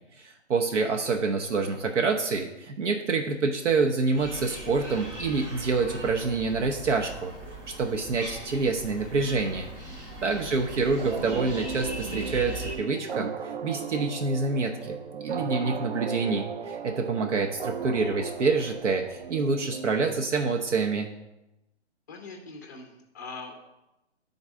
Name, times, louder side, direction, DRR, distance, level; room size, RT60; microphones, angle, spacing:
voice 1, 0.2-7.3 7.7-9.7 10.2-21.1, right 4 dB, 80° right, 2 dB, 0.9 m, -27 dB
sound 1, 4.1-12.8, right 1 dB, 20° right, 1.0 m, -40 dB
voice 2, 10.3-10.7 22.1-23.6, left 3 dB, 15° left, 2 dB, 0.5 m, -43 dB
sound 2, 11.0-20.4, right 6 dB, 50° right, 0.5 m, -36 dB
9.7 x 4.0 x 3.6 m, 0.95 s
hypercardioid pair, 155°, 35 cm